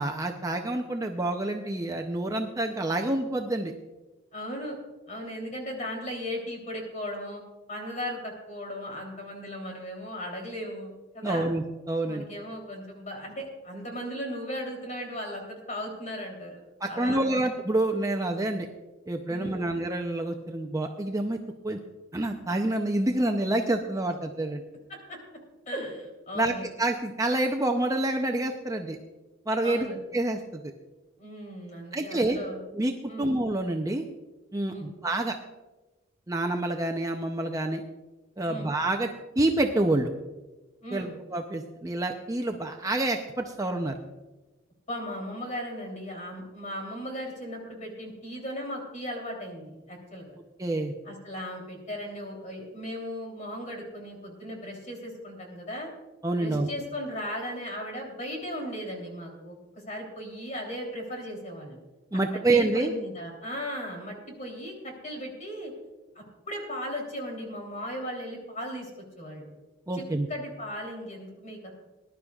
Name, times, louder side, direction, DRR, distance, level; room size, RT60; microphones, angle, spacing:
voice 1, 0.0-3.7 11.2-12.2 16.8-18.7 19.1-21.4 21.6-21.8 22.1-24.6 26.3-29.0 29.5-29.9 30.1-30.6 31.9-32.4 32.7-34.1 34.5-35.4 36.3-37.8 38.4-39.1 39.4-40.1 40.9-44.0 50.6-50.9 56.2-56.7 62.1-62.9 69.9-70.3, right 2 dB, 15° right, 3 dB, 0.6 m, -27 dB
voice 2, 4.3-4.8 5.1-7.4 7.7-11.5 12.1-16.6 16.9-17.4 19.3-19.7 25.1-25.2 25.7-26.7 29.6-30.0 31.2-32.6 33.1-33.3 34.7-34.9 38.4-38.7 40.8-41.1 44.9-50.4 51.0-55.9 56.4-59.5 59.9-61.8 62.5-65.7 66.1-69.5 69.9-70.0 70.3-71.7, equal, 35° left, 1 dB, 3.2 m, -37 dB
20.0 x 11.5 x 2.4 m, 1.1 s
head